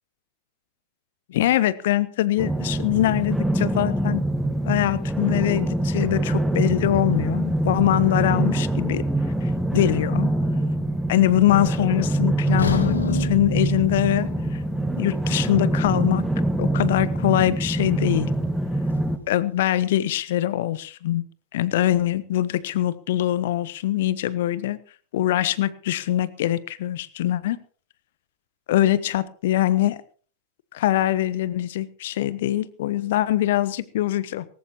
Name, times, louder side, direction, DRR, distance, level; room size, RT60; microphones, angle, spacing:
voice 1, 1.3-4.2 4.6-9.0 9.4-10.3 11.1-14.3 15.0-16.2 16.6-18.3 19.3-21.2 21.5-24.8 25.1-27.6 28.7-30.0 30.7-34.4, left 13 dB, 55° left, 18 dB, 1.0 m, -23 dB
sound 1, 2.4-19.2, right 1 dB, 5° right, 1.5 m, -24 dB
sound 2, 12.6-16.6 17.0-17.2 17.7-17.8, left 6 dB, 70° left, 1.8 m, -32 dB
19.5 x 18.0 x 3.0 m, 0.41 s
figure-of-eight pair, 90°, 0 cm